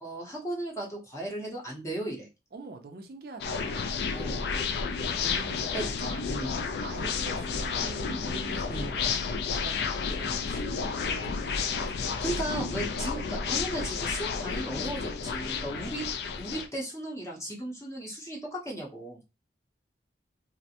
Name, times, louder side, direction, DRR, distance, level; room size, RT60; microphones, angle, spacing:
voice 1, 0.0-2.3 4.1-4.5 5.7-5.9 6.3-6.5 8.7-8.9 12.2-16.0 16.4-19.2, right 1 dB, 15° left, 0.7 m, -35 dB
voice 2, 2.5-4.0 5.2-6.4 6.8-12.5 15.7-16.2, right 3 dB, 55° right, 0.4 m, -45 dB
sound 1, 3.4-16.7, left 5 dB, 65° left, 0.3 m, -31 dB
2.4 x 2.1 x 2.7 m
head